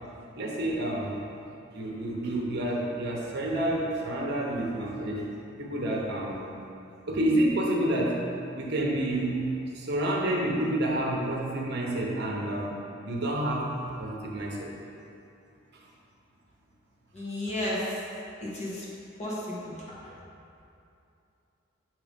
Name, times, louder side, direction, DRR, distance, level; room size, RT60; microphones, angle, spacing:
voice 1, 0.3-1.2 1.7-5.3 5.6-6.4 7.1-8.2 8.6-9.4 9.7-12.8 13.1-13.7 14.0-14.7, right 1 dB, 55° right, -2 dB, 0.9 m, -29 dB
voice 2, 17.1-17.8 18.4-18.8 19.2-20.1, left 1 dB, 35° left, -6 dB, 1.2 m, -33 dB
7.6 x 2.9 x 5.1 m, 2.7 s
head